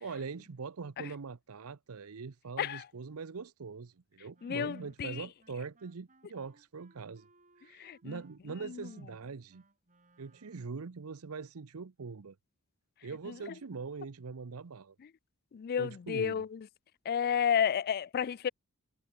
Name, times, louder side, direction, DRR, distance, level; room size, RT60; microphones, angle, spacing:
voice 1, 0.0-7.3 7.6-9.6 10.2-12.4 13.0-15.0 15.8-16.4, right 5 dB, 80° right, 0.7 m, -42 dB
Wind instrument woodwind instrument, 4.3-11.0, right 3 dB, 35° right, 4.2 m, -66 dB
voice 2, 4.4-5.2 7.7-8.2 8.6-8.9 13.3-13.5 15.5-16.7 17.1-18.5, left 8 dB, 45° left, 0.3 m, -32 dB
head